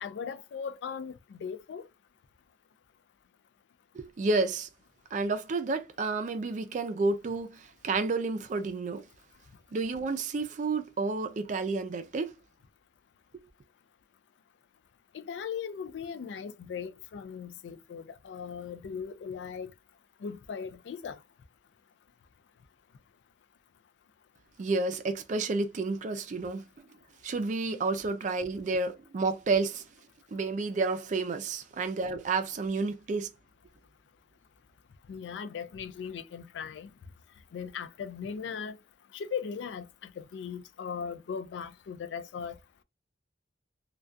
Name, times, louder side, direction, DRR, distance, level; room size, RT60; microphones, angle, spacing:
voice 1, 0.0-1.9 15.1-19.7 20.2-21.2 35.1-36.9 37.5-38.8 39.1-42.6, left 6 dB, 80° left, 0.3 m, -38 dB
voice 2, 3.9-4.7 5.1-9.0 9.7-12.3 24.6-26.8 27.2-29.8 30.3-33.3, right 3 dB, 45° right, 0.4 m, -30 dB
2.3 x 2.2 x 2.5 m
head